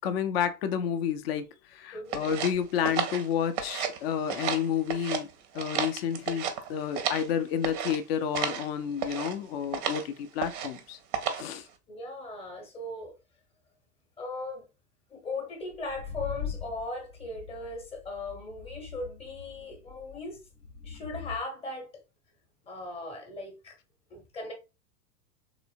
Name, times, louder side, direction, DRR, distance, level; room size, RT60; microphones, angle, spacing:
voice 1, 0.0-5.3 5.5-11.0 11.4-11.7, left 8 dB, 40° left, 0.4 m, -30 dB
voice 2, 1.9-2.3 11.9-13.2 14.2-14.7 15.1-20.4 20.8-22.0 22.7-23.8 24.1-24.5, left 2 dB, 10° left, 0.8 m, -38 dB
sound 1, 2.1-4.0 4.3-5.2 5.5-7.3 7.6-8.0 8.3-8.7 9.0-9.3 9.7-10.1 10.4-10.8 11.1-11.5, right 8 dB, 30° right, 0.5 m, -32 dB
sound 2, 15.7-21.4, left 6 dB, 85° left, 0.8 m, -41 dB
3.2 x 2.9 x 2.4 m
figure-of-eight pair, 95°, 49 cm